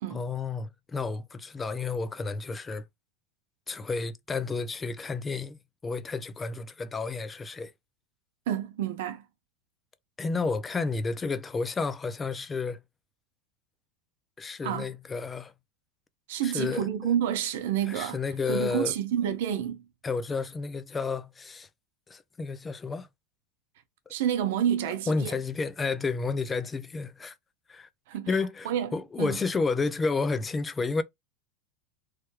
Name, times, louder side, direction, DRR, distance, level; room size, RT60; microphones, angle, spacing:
voice 1, 0.1-2.8 3.7-7.7 10.2-12.8 14.4-15.5 16.4-16.9 17.9-18.9 20.0-21.7 22.1-23.1 24.8-27.4 27.7-27.9 28.3-31.0, left 4 dB, 15° left, 0.3 m, -31 dB
voice 2, 8.5-9.2 14.6-14.9 16.3-18.2 18.5-19.8 24.1-25.4 28.1-28.3 28.6-29.4, right 9 dB, 75° right, 0.6 m, -29 dB
3.2 x 2.1 x 3.0 m
supercardioid pair, 155°, 0 cm